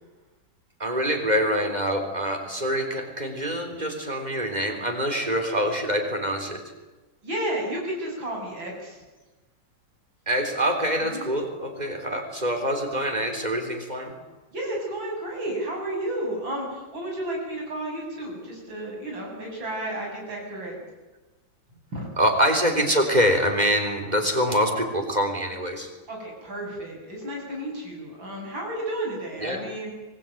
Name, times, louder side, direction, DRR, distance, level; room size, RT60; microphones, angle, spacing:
voice 1, 0.8-6.6 10.3-14.1 22.2-25.9 29.4-29.6, equal, 20° right, 3 dB, 3.8 m, -25 dB
voice 2, 7.2-9.0 11.1-11.3 14.5-20.8 21.9-22.1 26.1-29.9, right 1 dB, 85° right, -1 dB, 8.5 m, -32 dB
25.0 x 20.5 x 9.2 m, 1.1 s
omnidirectional pair, 2.0 m